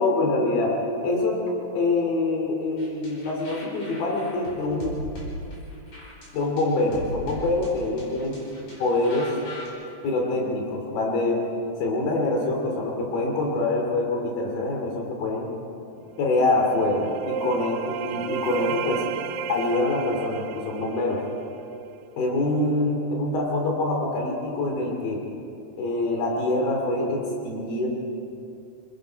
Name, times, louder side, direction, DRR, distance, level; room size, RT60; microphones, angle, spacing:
voice 1, 0.0-5.0 6.3-8.4 8.8-9.3 10.0-11.4 11.8-15.5 16.2-19.0 19.5-21.2 22.2-25.2 25.8-27.9, left 2 dB, 85° left, 0 dB, 4.6 m, -25 dB
sound 1, 2.8-9.7, left 1 dB, 60° left, 6.5 m, -39 dB
sound 2, 16.1-21.8, right 10 dB, 80° right, 1.7 m, -33 dB
28.0 x 20.0 x 4.7 m, 2.6 s
omnidirectional pair, 4.1 m